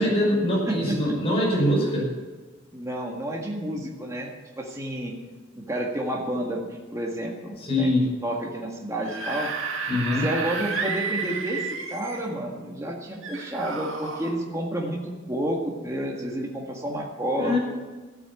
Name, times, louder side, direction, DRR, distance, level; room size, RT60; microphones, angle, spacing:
voice 1, 0.0-2.1 7.6-8.1 9.9-10.3 17.3-17.6, left 1 dB, 30° left, -4 dB, 5.7 m, -23 dB
voice 2, 0.7-1.2 2.7-5.1 5.6-6.6 6.9-7.9 8.2-9.5 10.2-11.6 11.9-17.6, right 1 dB, 15° right, -1 dB, 1.8 m, -30 dB
Screaming / Screech, 8.9-12.3 13.2-14.3, right 5 dB, 70° right, 2.1 m, -31 dB
14.0 x 8.7 x 8.6 m, 1.3 s
head